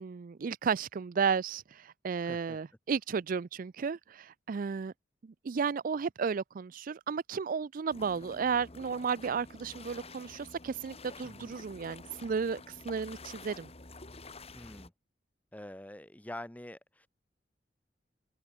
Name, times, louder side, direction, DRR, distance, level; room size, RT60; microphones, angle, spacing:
voice 1, 0.0-4.9 5.2-13.7, right 6 dB, 50° right, 0.4 m, -33 dB
voice 2, 2.2-2.6 11.2-11.5 14.5-14.9 15.5-17.1, left 1 dB, 10° left, 1.1 m, -46 dB
sound 1, 7.9-14.9, left 3 dB, 35° left, 2.7 m, -49 dB
head